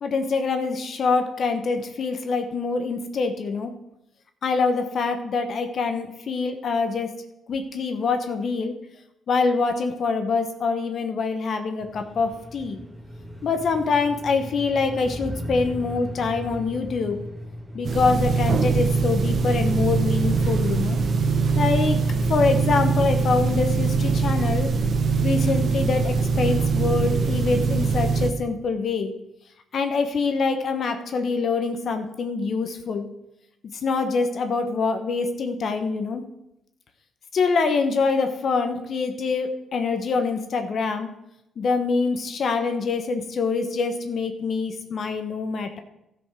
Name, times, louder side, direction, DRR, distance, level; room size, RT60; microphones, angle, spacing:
voice 1, 0.0-3.7 4.4-7.1 7.5-8.7 9.3-12.8 13.4-17.2 17.7-21.0 21.6-22.0 22.2-24.7 25.2-29.1 29.7-33.1 33.8-36.2 37.3-41.1 41.6-45.8, left 4 dB, 55° left, 7 dB, 1.0 m, -25 dB
sound 1, 11.8-25.8, equal, 10° right, 1.8 m, -39 dB
sound 2, 17.8-28.3, right 4 dB, 50° right, 1.1 m, -22 dB
12.5 x 5.2 x 6.1 m, 0.85 s
cardioid pair, 90°, 0 cm